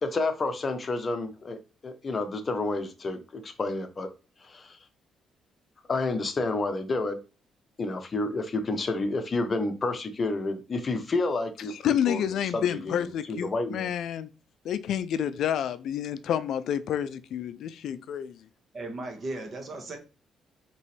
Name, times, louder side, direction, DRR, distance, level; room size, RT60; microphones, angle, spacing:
voice 1, 0.0-4.1 4.4-4.8 5.9-7.2 7.8-11.7 12.1-12.2 12.5-13.0 13.3-13.9, left 3 dB, 35° left, 0.7 m, -30 dB
voice 2, 11.7-14.3 14.6-18.4, left 9 dB, 75° left, 0.3 m, -29 dB
voice 3, 18.7-20.0, right 2 dB, 45° right, 1.3 m, -36 dB
5.4 x 3.0 x 3.2 m
cardioid pair, 90°, 0 cm